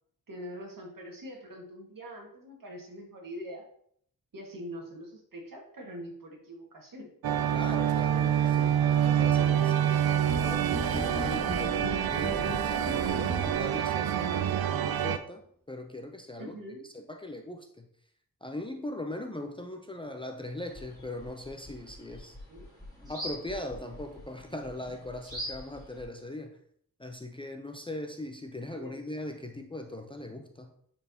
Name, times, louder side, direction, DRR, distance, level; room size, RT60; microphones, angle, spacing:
voice 1, 0.3-3.6 4.3-7.1 11.6-11.7 16.4-16.8 22.5-22.7 28.7-29.0, equal, 65° right, 0 dB, 1.7 m, -43 dB
sound 1, 7.2-15.2, right 9 dB, 80° right, 0.5 m, -27 dB
voice 2, 7.5-10.0 10.4-16.6 16.9-17.9 18.4-22.4 23.1-26.6 27.0-30.7, left 1 dB, 15° left, 5 dB, 0.5 m, -40 dB
sound 2, 10.3-13.8, right 1 dB, 40° right, 1.4 m, -36 dB
sound 3, 20.7-26.0, equal, 10° right, 2.7 m, -44 dB
10.5 x 4.3 x 2.8 m, 0.66 s
wide cardioid pair, 130°, 36 cm